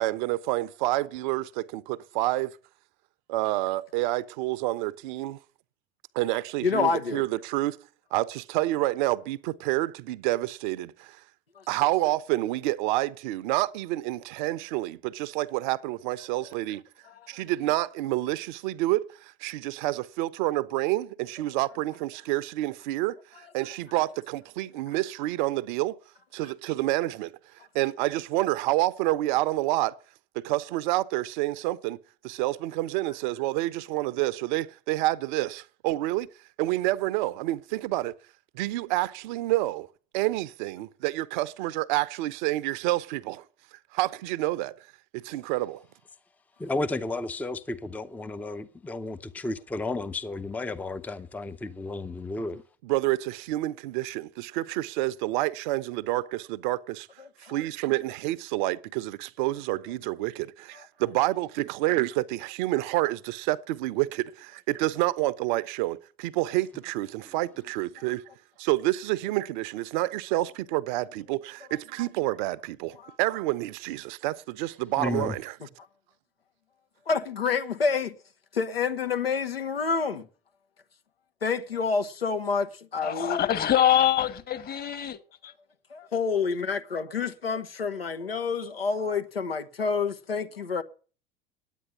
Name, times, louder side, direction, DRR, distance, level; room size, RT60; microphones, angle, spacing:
voice 1, 0.0-2.5 3.3-5.4 6.1-7.8 8.1-11.2 11.7-16.8 17.3-23.2 23.5-26.0 26.3-27.3 27.7-29.9 30.3-32.0 32.2-36.3 36.6-38.1 38.5-39.9 40.1-43.4 43.9-44.8 45.1-45.8 52.8-57.1 57.5-68.2 68.6-75.5, right 17 dB, 55° right, 0.7 m, -28 dB
voice 2, 6.6-7.2 11.6-11.7 17.1-17.3 57.2-57.6 60.7-60.8 73.0-73.1 77.1-78.2 78.5-80.3 81.4-83.4 85.9-90.8, left 5 dB, 85° left, 1.1 m, -28 dB
voice 3, 46.6-52.6 75.0-75.3, left 2 dB, 5° left, 0.6 m, -32 dB
voice 4, 83.0-85.2 85.4-85.5, left 10 dB, 30° left, 1.5 m, -24 dB
9.9 x 9.2 x 9.6 m
figure-of-eight pair, 75°, 29 cm